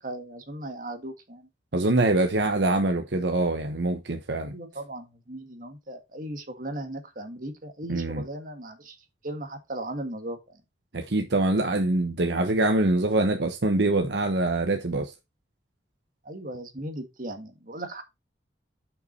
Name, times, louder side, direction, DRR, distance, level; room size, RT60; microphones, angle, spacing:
voice 1, 0.0-1.5 4.5-9.0 9.2-10.6 16.2-18.0, right 1 dB, 50° right, 1.8 m, -37 dB
voice 2, 1.7-4.5 7.9-8.2 10.9-15.1, right 2 dB, 80° right, 1.0 m, -24 dB
6.7 x 6.0 x 4.2 m
head